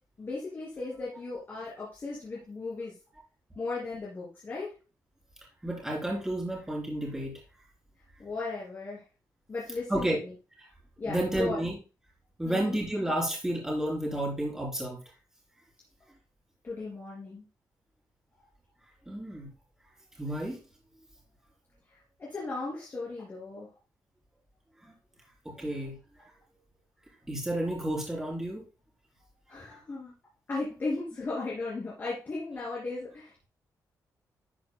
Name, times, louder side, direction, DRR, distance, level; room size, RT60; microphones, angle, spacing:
voice 1, 0.2-2.9 3.6-4.7 8.2-9.0 9.5-10.1 11.0-11.6 12.4-12.8 16.6-17.4 22.2-23.7 29.5-30.1 30.5-33.4, left 3 dB, 30° left, -6 dB, 2.9 m, -36 dB
voice 2, 5.6-7.4 9.9-10.2 10.6-10.7 11.0-11.8 12.4-15.0 19.1-19.5 20.2-20.6 24.8-24.9 25.5-26.0 27.3-28.6 29.7-29.8, right 1 dB, 5° right, -2 dB, 3.6 m, -31 dB
11.5 x 8.6 x 2.2 m, 0.31 s
wide cardioid pair, 175°, 7 cm